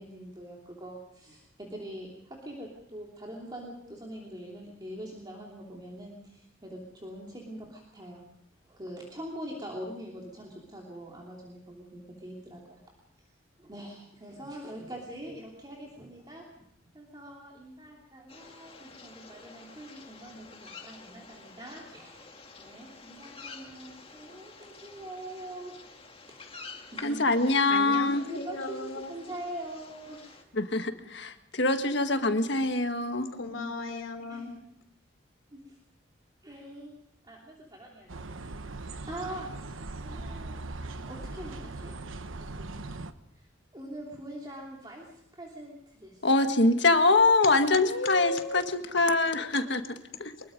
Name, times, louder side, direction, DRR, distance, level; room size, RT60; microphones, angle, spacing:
voice 1, 0.0-8.2 8.7-12.8 13.2-13.3 13.6-16.6 16.9-22.3 22.6-25.8 26.2-26.5 26.9-27.2 28.3-30.4 34.3-34.6 35.6-35.8 36.4-36.9 37.2-38.4 38.8-39.5 40.0-40.6 40.9-41.9 43.3-46.4, right 1 dB, 20° right, -2 dB, 3.0 m, -43 dB
sound 1, 18.3-30.4, left 4 dB, 30° left, 2.2 m, -49 dB
voice 2, 27.0-28.2 30.5-33.3 46.2-50.3, left 3 dB, 60° left, 7 dB, 1.8 m, -24 dB
voice 3, 27.7-29.1 33.3-34.5 47.7-48.6 50.4-50.5, left 2 dB, 85° left, 6 dB, 3.3 m, -35 dB
sound 2, 38.1-43.1, right 2 dB, 85° right, 1.2 m, -40 dB
23.5 x 22.0 x 5.3 m, 0.81 s
head